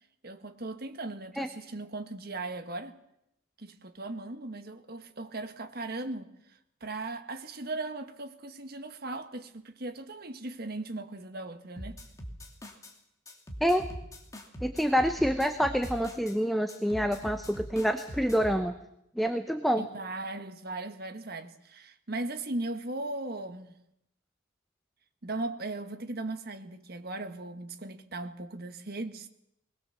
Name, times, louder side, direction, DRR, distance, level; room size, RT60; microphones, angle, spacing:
voice 1, 0.2-3.0 3.6-12.0 19.8-23.8 25.2-29.3, right 2 dB, 50° right, 1.6 m, -38 dB
sound 1, 11.8-12.9 13.3-16.4 16.7-18.6, equal, 15° left, 2.5 m, -42 dB
voice 2, 14.6-18.7 19.2-19.8, equal, ahead, 0.9 m, -27 dB
21.0 x 19.5 x 7.1 m
head